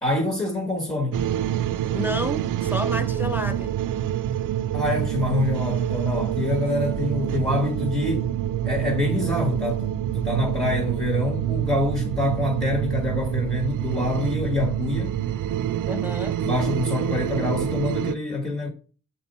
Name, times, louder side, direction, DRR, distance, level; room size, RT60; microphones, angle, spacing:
voice 1, 0.0-1.2 4.7-8.3 8.6-15.2 16.4-18.7, left 2 dB, 10° left, 1.4 m, -26 dB
sound 1, 1.1-18.1, right 11 dB, 70° right, 0.4 m, -26 dB
voice 2, 1.9-3.8 15.9-16.4, left 1 dB, 5° right, 0.4 m, -30 dB
7.5 x 4.3 x 4.2 m
wide cardioid pair, 165°, 33 cm